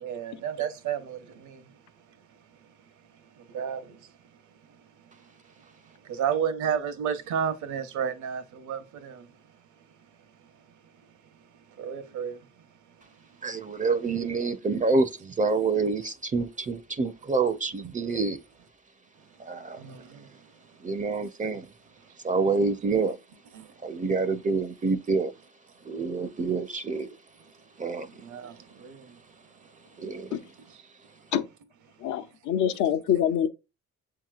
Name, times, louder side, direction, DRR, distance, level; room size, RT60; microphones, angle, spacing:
voice 1, 0.0-1.2 3.5-3.8 6.2-9.1 11.8-12.3 19.8-19.9 28.3-28.5 28.8-29.0, right 8 dB, 75° right, 0.9 m, -30 dB
voice 2, 13.4-18.4 19.4-20.0 20.8-21.7 22.2-23.2 23.8-25.3 25.9-27.1 27.8-28.2 30.0-30.4, right 4 dB, 25° right, 0.5 m, -27 dB
voice 3, 32.0-33.5, left 9 dB, 75° left, 0.7 m, -25 dB
7.1 x 2.9 x 2.3 m
cardioid pair, 90°, 30 cm